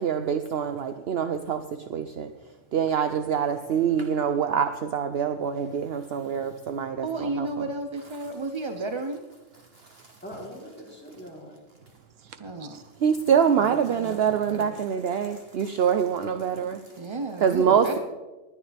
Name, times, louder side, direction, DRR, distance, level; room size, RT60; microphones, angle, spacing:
voice 1, 0.0-2.3 2.7-7.7 9.9-10.1 13.0-16.9 17.4-18.0, right 7 dB, 60° right, 0.8 m, -25 dB
voice 2, 2.1-2.7 6.3-6.4 6.8-7.0 8.2-8.4 9.6-10.2 11.8-13.0, right 7 dB, 80° right, 1.2 m, -54 dB
voice 3, 7.0-9.2 12.4-12.8 13.7-14.7 17.0-18.0, right 3 dB, 30° right, 0.6 m, -33 dB
voice 4, 10.2-11.5 17.9-18.0, equal, 10° left, 3.5 m, -41 dB
19.5 x 10.5 x 3.4 m
omnidirectional pair, 1.3 m